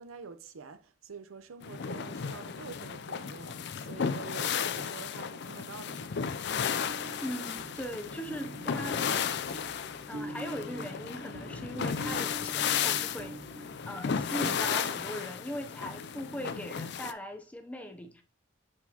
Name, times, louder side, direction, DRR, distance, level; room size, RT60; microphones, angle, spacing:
voice 1, 0.0-6.1, right 5 dB, 90° right, 0.7 m, -47 dB
sound 1, 1.6-17.1, left 7 dB, 55° left, 0.4 m, -34 dB
sound 2, 6.8-14.5, right 1 dB, 50° right, 0.6 m, -45 dB
voice 2, 7.2-9.2 10.1-13.4 13.8-18.2, equal, 5° left, 0.6 m, -39 dB
6.4 x 6.0 x 2.9 m
head